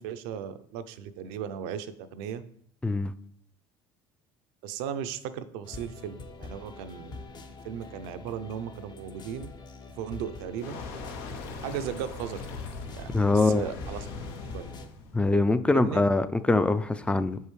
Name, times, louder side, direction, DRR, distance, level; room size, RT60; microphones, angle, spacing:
voice 1, 0.0-2.4 4.6-7.2 7.6-9.5 10.0-10.8 11.6-12.4 12.9-14.1 14.5-14.7 15.7-16.0, right 8 dB, 80° right, 11 dB, 0.5 m, -36 dB
sound 1, 5.6-14.9, left 3 dB, 35° left, 0.7 m, -45 dB
sound 2, 10.6-15.9, left 4 dB, 80° left, 0.8 m, -41 dB
voice 2, 13.1-13.6 15.1-17.4, left 2 dB, 10° left, 13 dB, 0.3 m, -23 dB
5.9 x 5.4 x 3.1 m, 0.63 s
supercardioid pair, 95°, 12 cm